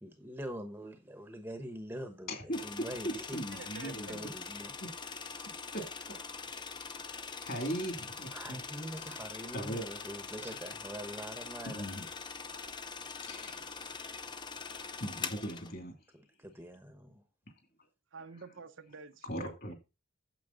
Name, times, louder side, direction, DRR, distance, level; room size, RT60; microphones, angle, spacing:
voice 1, 0.0-3.4 3.8-4.7 8.3-11.9 16.1-17.2, equal, 10° right, 0.9 m, -44 dB
voice 2, 2.3-4.2 5.7-5.8 7.1-8.6 9.5-9.8 11.7-12.1 13.3-13.9 15.0-15.9 19.3-19.7, equal, 45° left, 2.6 m, -39 dB
sound 1, 2.5-15.7, left 5 dB, 20° left, 0.6 m, -43 dB
voice 3, 3.3-4.2 18.1-19.7, right 4 dB, 65° right, 0.7 m, -49 dB
9.0 x 7.6 x 3.9 m
head